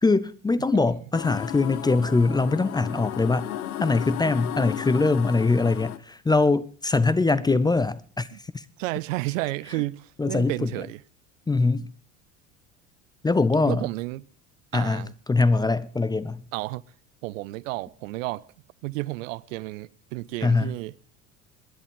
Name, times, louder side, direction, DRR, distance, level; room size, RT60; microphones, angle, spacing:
voice 1, 0.0-3.5 3.8-8.3 8.5-8.6 10.2-10.7 11.5-11.9 13.2-13.9 14.7-16.4 20.4-20.7, left 3 dB, 10° left, 0.6 m, -22 dB
sound 1, 1.1-6.0, left 12 dB, 75° left, 0.7 m, -34 dB
voice 2, 8.8-11.0 13.7-14.2 14.7-15.1 16.5-16.8 17.2-18.5 18.8-20.9, right 20 dB, 60° right, 0.6 m, -31 dB
26.5 x 11.0 x 3.6 m
figure-of-eight pair, 65°, 43 cm